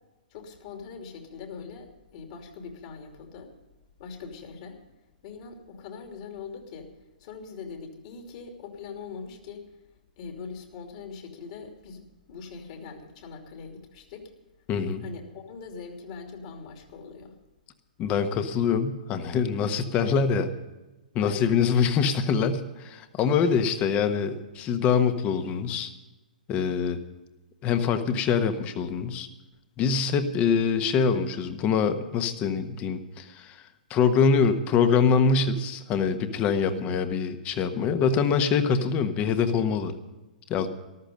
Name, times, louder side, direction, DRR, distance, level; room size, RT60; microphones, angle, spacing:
voice 1, 0.3-3.5 4.0-4.8 5.2-6.9 7.2-9.7 10.2-14.3 15.0-17.4 21.2-21.5 23.4-23.7 36.7-37.0, left 5 dB, 45° left, 4 dB, 2.9 m, -41 dB
voice 2, 14.7-15.0 18.0-20.5 21.1-25.9 26.5-27.0 27.6-29.3 29.8-33.6 33.9-39.9 40.5-40.7, left 6 dB, 30° left, 9 dB, 1.3 m, -24 dB
14.0 x 13.0 x 5.3 m, 1.1 s
figure-of-eight pair, 115°, 5 cm